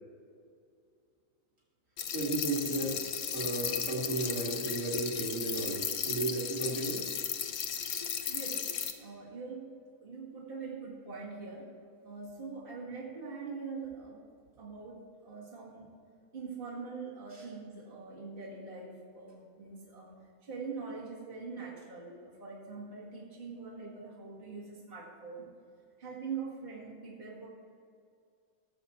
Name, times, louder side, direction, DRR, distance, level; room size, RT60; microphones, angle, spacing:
sound 1, 2.0-8.9, left 8 dB, 75° left, 1.3 m, -35 dB
voice 1, 2.1-3.0 3.3-7.0, right 2 dB, 60° right, -4 dB, 2.6 m, -34 dB
voice 2, 8.3-11.7 12.0-14.2 14.6-15.9 16.3-20.1 20.4-25.5 26.0-27.5, right 4 dB, 35° right, -6 dB, 2.2 m, -43 dB
18.0 x 7.1 x 4.5 m, 2.3 s
omnidirectional pair, 1.5 m